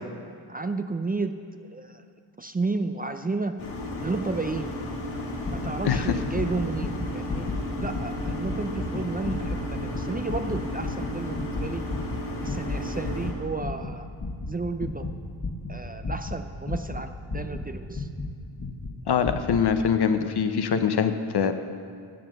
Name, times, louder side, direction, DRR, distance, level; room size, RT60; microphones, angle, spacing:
voice 1, 0.5-2.0 2.4-3.6 4.0-4.7 5.5-7.5 7.8-11.8 12.4-14.1 14.5-15.0 15.7-18.1, right 3 dB, 20° right, 8 dB, 0.5 m, -32 dB
sound 1, 3.6-13.3, left 1 dB, 85° left, 2.1 m, -34 dB
sound 2, 5.4-18.3 18.6-18.9 19.2-19.6 19.9-20.0, left 3 dB, 35° left, 1.6 m, -33 dB
voice 2, 19.1-21.5, left 7 dB, 55° left, 9 dB, 0.9 m, -23 dB
12.0 x 7.6 x 6.7 m, 2.2 s
cardioid pair, 60°, 47 cm